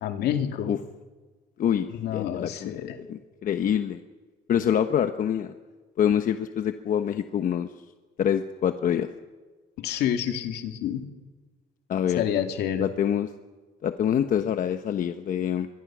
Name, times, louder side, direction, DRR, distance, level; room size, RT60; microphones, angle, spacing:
voice 1, 0.0-0.7 1.9-3.0 9.8-11.0 12.2-12.9, left 10 dB, 75° left, 5 dB, 2.4 m, -28 dB
voice 2, 1.6-4.0 4.5-5.5 6.0-7.7 8.2-9.1 11.9-12.2 12.8-13.3 13.8-15.7, left 9 dB, 55° left, 8 dB, 1.0 m, -26 dB
25.5 x 22.5 x 6.2 m, 1.3 s
cardioid pair, 110°, 17 cm